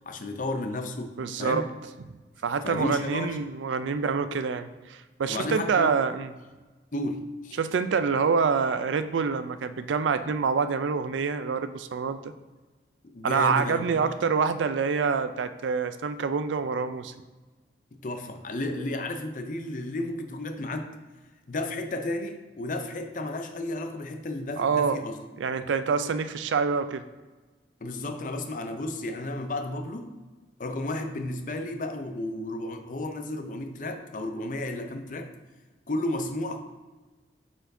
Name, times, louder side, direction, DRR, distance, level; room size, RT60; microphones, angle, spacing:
voice 1, 0.1-1.7 2.6-3.4 5.3-6.0 6.9-7.6 13.0-14.1 17.9-21.0 21.5-25.2 27.8-30.1 30.6-35.3 35.9-36.6, left 2 dB, 45° left, 6 dB, 0.5 m, -33 dB
voice 2, 1.2-1.7 2.4-6.3 7.6-12.3 13.2-17.1 24.6-25.0 25.4-27.0, right 5 dB, 85° right, 11 dB, 0.4 m, -26 dB
8.6 x 4.4 x 2.6 m, 1.3 s
head